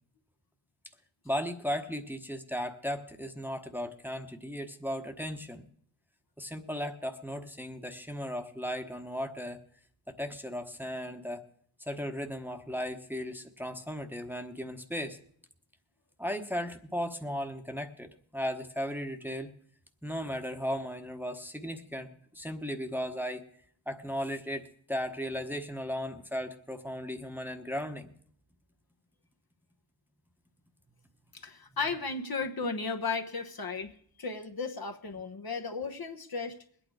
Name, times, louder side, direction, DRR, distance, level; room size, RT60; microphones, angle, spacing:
voice 1, 1.2-5.6 6.4-9.6 10.1-11.5 11.8-15.2 16.2-19.5 20.0-23.5 23.9-28.1, equal, 5° right, 5 dB, 1.1 m, -36 dB
voice 2, 31.3-33.9 34.2-36.6, left 4 dB, 45° left, 4 dB, 1.2 m, -35 dB
21.0 x 9.1 x 4.9 m, 0.63 s
cardioid pair, 45°, 49 cm